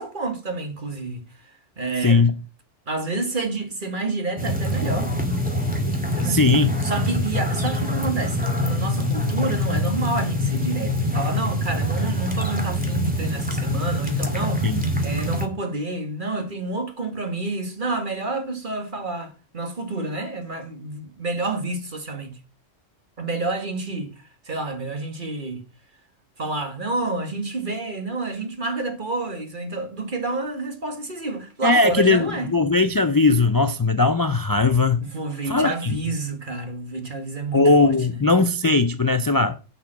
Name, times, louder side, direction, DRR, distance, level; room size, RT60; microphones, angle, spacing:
voice 1, 0.0-2.3 2.9-5.1 6.2-6.4 6.8-22.4 23.2-25.6 26.4-32.5 35.0-37.9, right 2 dB, 45° right, 2.0 m, -29 dB
voice 2, 2.0-2.3 6.2-6.7 14.6-14.8 31.6-35.0 35.5-36.0 37.5-39.6, left 3 dB, 25° left, 0.4 m, -19 dB
sound 1, 4.4-15.5, left 1 dB, 5° right, 2.1 m, -24 dB
11.0 x 5.7 x 7.5 m
omnidirectional pair, 1.2 m